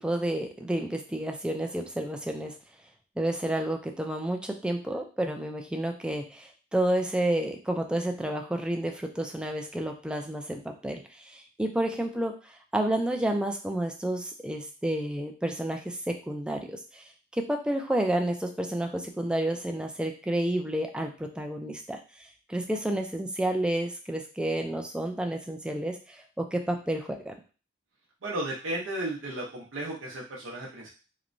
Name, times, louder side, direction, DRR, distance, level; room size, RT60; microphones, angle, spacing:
voice 1, 0.0-2.5 3.2-17.0 17.3-27.3, right 1 dB, 5° right, 3 dB, 0.3 m, -30 dB
voice 2, 28.2-30.9, right 1 dB, 85° right, -4 dB, 0.7 m, -34 dB
2.9 x 2.1 x 2.5 m, 0.35 s
head